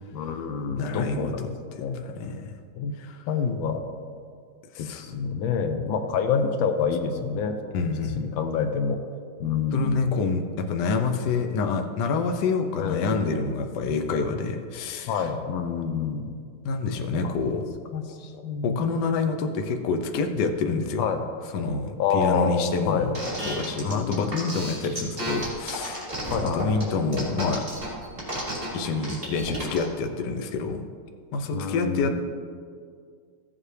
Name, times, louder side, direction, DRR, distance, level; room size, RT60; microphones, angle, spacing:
voice 1, 0.1-1.5 1.8-2.1 2.8-2.9 3.3-3.8 4.8-9.0 9.4-10.1 12.8-13.2 15.0-16.3 17.2-17.6 17.9-18.8 21.0-21.2 22.0-23.1 23.8-24.3 26.3-26.8 31.5-32.2, left 6 dB, 80° left, 7 dB, 1.4 m, -27 dB
voice 2, 0.8-1.5 2.2-2.5 3.0-3.3 4.7-5.0 7.7-8.3 9.7-15.3 16.6-17.7 18.6-21.0 21.5-23.1 23.4-26.1 26.4-27.7 28.7-30.9 31.3-32.2, left 4 dB, 65° left, 6 dB, 1.3 m, -27 dB
sound 1, 23.1-29.8, equal, 20° right, 2.9 m, -32 dB
15.5 x 7.5 x 3.3 m, 2.1 s
omnidirectional pair, 2.1 m